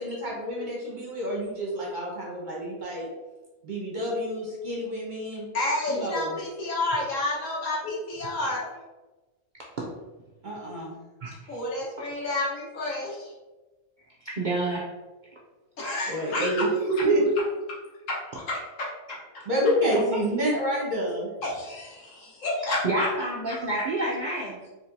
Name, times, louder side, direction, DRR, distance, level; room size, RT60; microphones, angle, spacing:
voice 1, 0.0-3.1 3.6-5.5 5.9-6.2 10.4-11.0 16.1-17.2 19.5-21.3, right 1 dB, 40° right, -4 dB, 1.0 m, -28 dB
voice 2, 5.5-8.7 11.5-13.3 15.8-16.7 18.1-18.6 19.1-19.2 21.4-23.1, left 2 dB, 65° left, -5 dB, 1.4 m, -30 dB
voice 3, 11.2-11.6 14.2-14.8 22.8-24.6, right 2 dB, 75° right, -3 dB, 0.4 m, -28 dB
4.4 x 3.0 x 2.6 m, 1.2 s
omnidirectional pair, 1.5 m